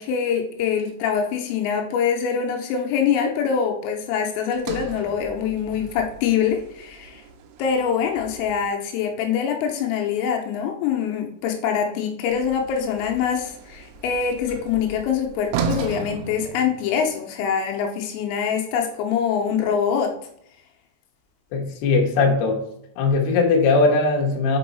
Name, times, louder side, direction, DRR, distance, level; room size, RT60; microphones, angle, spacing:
voice 1, 0.0-7.2 7.6-20.1, left 7 dB, 85° left, 2 dB, 3.2 m, -24 dB
Sliding door, 4.5-8.8 12.3-17.2, right 5 dB, 85° right, 2.5 m, -35 dB
voice 2, 21.5-22.6 23.0-24.6, left 3 dB, 70° left, 0 dB, 2.6 m, -19 dB
6.1 x 5.4 x 4.0 m, 0.73 s
omnidirectional pair, 5.9 m